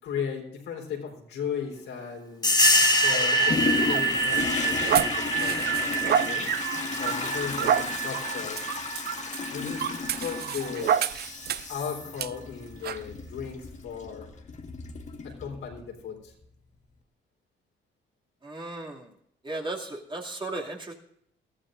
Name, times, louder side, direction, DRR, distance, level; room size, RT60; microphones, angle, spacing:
voice 1, 0.0-2.6 3.0-6.5 7.0-8.9 9.5-11.0 11.7-14.3 15.2-16.3, left 7 dB, 80° left, 0 dB, 4.1 m, -36 dB
sound 1, 2.4-10.7, right 1 dB, 20° left, 2.1 m, -26 dB
sound 2, 3.1-11.8 12.2-12.3 12.8-13.0, right 9 dB, 55° right, 0.4 m, -30 dB
Toilet flush, 3.5-15.9 16.4-16.5, left 4 dB, 35° left, 1.6 m, -34 dB
voice 2, 18.4-19.1 19.4-20.9, right 2 dB, 25° right, -1 dB, 2.6 m, -35 dB
21.0 x 14.5 x 2.6 m, 0.70 s
cardioid pair, 90°, 20 cm